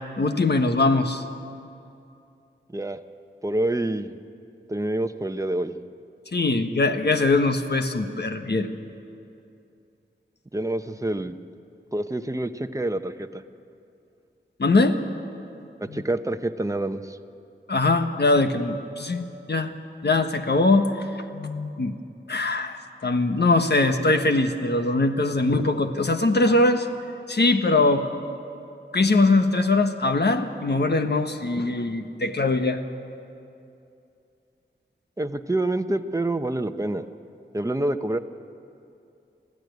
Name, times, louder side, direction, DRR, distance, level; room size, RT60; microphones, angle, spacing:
voice 1, 0.2-1.2 6.3-8.7 14.6-15.0 15.9-16.0 17.7-19.7 20.0-21.9 22.3-26.9 27.3-28.1 28.9-32.8, left 2 dB, 60° left, 6 dB, 1.4 m, -22 dB
voice 2, 3.4-4.2 4.7-5.9 10.5-11.3 11.9-13.4 15.8-17.2 35.2-37.0 37.5-38.2, right 1 dB, 15° right, 8 dB, 0.9 m, -27 dB
25.5 x 15.5 x 9.4 m, 2.7 s
wide cardioid pair, 80°, 19 cm